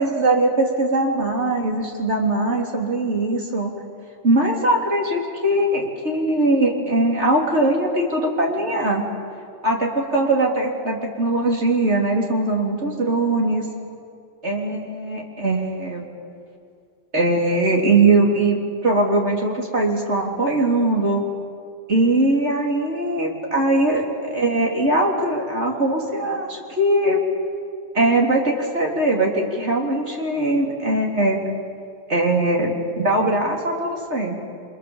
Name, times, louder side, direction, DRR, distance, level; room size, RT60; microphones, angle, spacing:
voice 1, 0.0-3.7 4.2-9.0 9.6-13.7 14.4-16.0 17.1-21.2 21.9-27.2 27.9-31.4 32.1-34.4, right 2 dB, 90° right, -1 dB, 4.1 m, -21 dB
30.0 x 25.0 x 7.4 m, 2.3 s
omnidirectional pair, 1.1 m